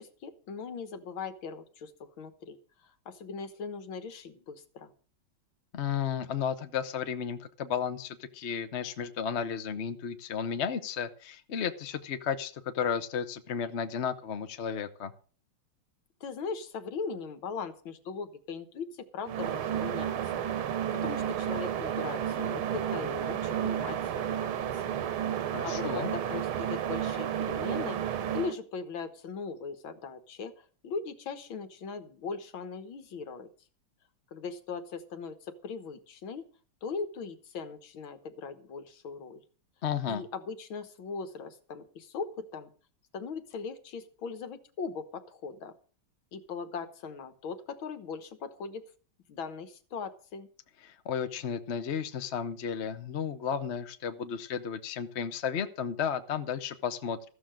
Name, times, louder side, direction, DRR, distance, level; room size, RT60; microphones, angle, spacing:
voice 1, 0.0-4.9 16.2-20.4 20.9-25.0 25.3-28.0 28.3-33.5 34.3-36.4 36.8-39.4 40.1-42.7 43.1-45.7 46.3-48.8 49.3-50.5, left 5 dB, 70° left, 10 dB, 2.0 m, -39 dB
voice 2, 5.7-15.1 25.5-26.1 39.8-40.2 50.8-57.2, left 7 dB, 45° left, 9 dB, 0.9 m, -33 dB
sound 1, 19.2-28.5, right 9 dB, 80° right, 1.9 m, -32 dB
14.5 x 7.0 x 7.6 m, 0.41 s
omnidirectional pair, 2.3 m